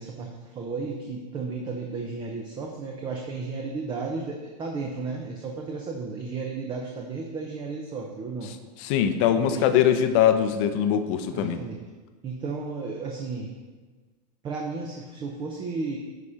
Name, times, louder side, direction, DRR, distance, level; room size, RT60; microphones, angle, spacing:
voice 1, 0.0-8.5 9.4-9.8 11.3-11.8 12.2-13.5 14.4-16.0, right 4 dB, 20° right, 1 dB, 0.7 m, -33 dB
voice 2, 8.8-11.6, left 9 dB, 50° left, 9 dB, 0.7 m, -22 dB
9.6 x 4.3 x 4.9 m, 1.3 s
supercardioid pair, 145°, 21 cm